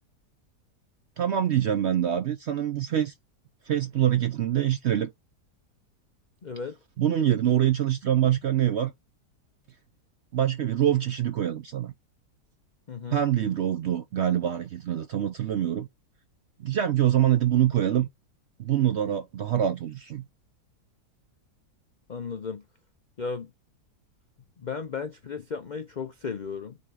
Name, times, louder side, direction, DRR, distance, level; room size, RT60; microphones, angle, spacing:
voice 1, 1.2-3.1 3.7-5.1 7.0-8.9 10.3-11.9 13.1-15.9 16.6-18.1 18.6-20.2, right 11 dB, 65° right, 0.7 m, -25 dB
voice 2, 6.4-6.8 12.9-13.2 22.1-22.6 23.2-23.5 24.6-26.8, left 5 dB, 70° left, 0.4 m, -35 dB
5.5 x 3.6 x 4.7 m
omnidirectional pair, 1.7 m